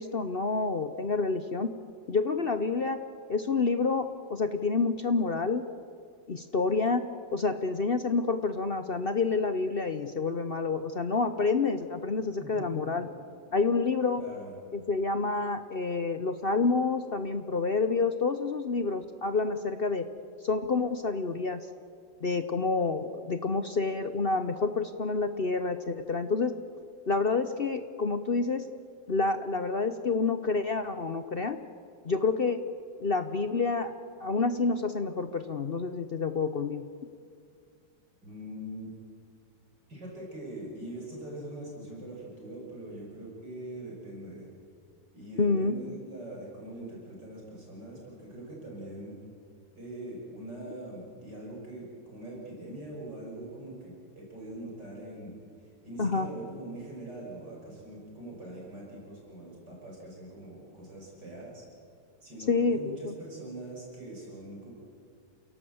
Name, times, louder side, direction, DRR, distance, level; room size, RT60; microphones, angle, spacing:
voice 1, 0.0-1.7 2.1-3.0 3.3-5.6 6.3-7.0 7.3-13.1 13.5-14.2 14.7-20.1 20.4-21.6 22.2-26.5 27.1-28.6 29.1-31.6 32.0-32.6 33.0-33.9 34.2-36.8 45.4-45.7 56.0-56.3 62.5-63.1, left 4 dB, 50° left, 9 dB, 0.7 m, -28 dB
voice 2, 12.4-13.2 14.1-14.5 38.2-38.9 39.9-44.5 45.1-49.2 49.7-61.6 62.2-64.7, right 1 dB, 65° right, -3 dB, 6.3 m, -43 dB
28.5 x 17.5 x 7.8 m, 2.4 s
omnidirectional pair, 2.0 m